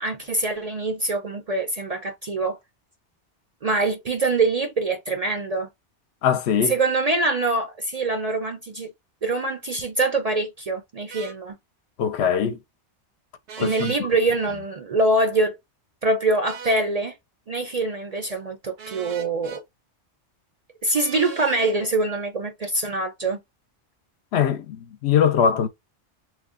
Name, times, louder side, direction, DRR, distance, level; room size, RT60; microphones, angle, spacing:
voice 1, 0.0-2.6 3.6-5.7 6.7-8.9 9.2-11.6 13.6-15.6 16.0-17.2 17.5-19.6 20.8-23.4, right 2 dB, 45° right, 0.5 m, -24 dB
voice 2, 6.2-6.7 12.0-12.6 13.6-14.1 24.3-25.7, left 8 dB, 75° left, 0.8 m, -22 dB
sound 1, 11.1-11.4 13.5-14.0 16.4-16.8 18.8-19.6 20.9-21.8, right 6 dB, 80° right, 1.1 m, -39 dB
3.2 x 2.0 x 3.6 m
omnidirectional pair, 1.2 m